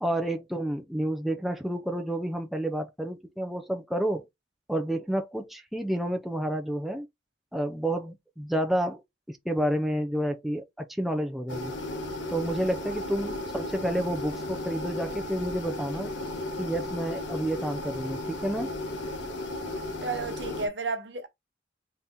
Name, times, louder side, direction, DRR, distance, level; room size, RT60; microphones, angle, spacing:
voice 1, 0.0-4.3 4.7-7.1 7.5-9.0 9.3-11.7 12.3-16.1 16.6-18.7, right 1 dB, ahead, 0.4 m, -30 dB
sound 1, 11.5-20.7, left 2 dB, 85° left, 1.0 m, -35 dB
voice 2, 20.0-21.3, right 4 dB, 70° right, 1.0 m, -32 dB
4.0 x 2.9 x 3.7 m
head